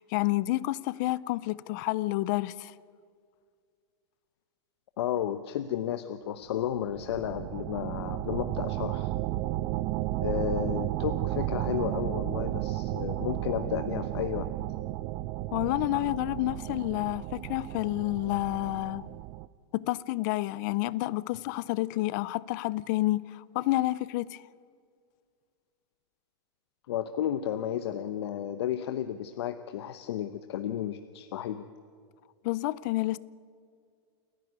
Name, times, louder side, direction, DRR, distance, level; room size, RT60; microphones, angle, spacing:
voice 1, 0.0-2.7 15.5-19.1 19.7-24.4 32.4-33.2, left 18 dB, 45° left, 0.5 m, -29 dB
voice 2, 5.0-9.1 10.2-14.5 26.9-31.7, left 10 dB, 70° left, 0.9 m, -33 dB
sound 1, 6.6-19.5, right 16 dB, 35° right, 0.4 m, -33 dB
28.5 x 11.0 x 9.5 m
supercardioid pair, 150°, 14 cm